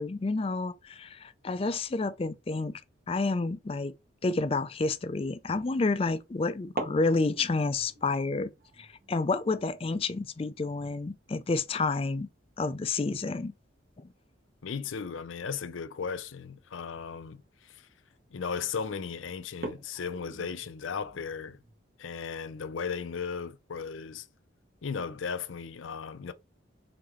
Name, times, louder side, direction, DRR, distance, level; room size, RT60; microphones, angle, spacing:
voice 1, 0.0-2.8 3.1-3.9 4.2-8.5 8.8-12.3 12.6-13.5 14.0-14.1, left 3 dB, 30° left, 0.4 m, -29 dB
sound 1, 5.1-5.4 6.6-13.0 13.3-13.4 13.8-14.1 15.2-15.3 16.0-16.1 16.6-16.7 17.1-17.4 18.0-18.4 18.8-18.9 19.5-21.8, right 2 dB, 50° right, 1.0 m, -44 dB
voice 2, 14.6-17.9 18.3-21.6 22.0-24.3 24.8-26.3, left 6 dB, 80° left, 0.5 m, -36 dB
3.9 x 3.8 x 3.0 m
head